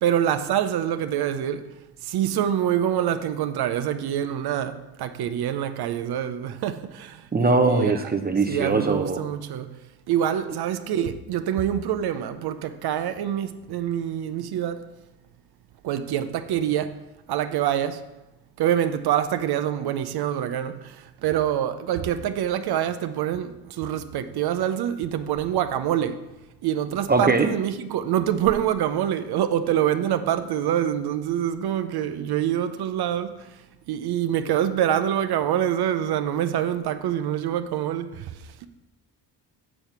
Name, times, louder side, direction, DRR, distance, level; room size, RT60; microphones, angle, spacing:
voice 1, 0.0-1.7 2.0-8.1 8.5-9.8 10.1-14.9 15.8-17.0 17.3-18.0 18.6-26.2 26.6-33.6 33.9-38.7, right 10 dB, 55° right, 0.7 m, -26 dB
voice 2, 7.3-9.2 27.1-27.5, right 3 dB, 20° right, 0.7 m, -21 dB
6.4 x 6.2 x 5.9 m
hypercardioid pair, 50°, 47 cm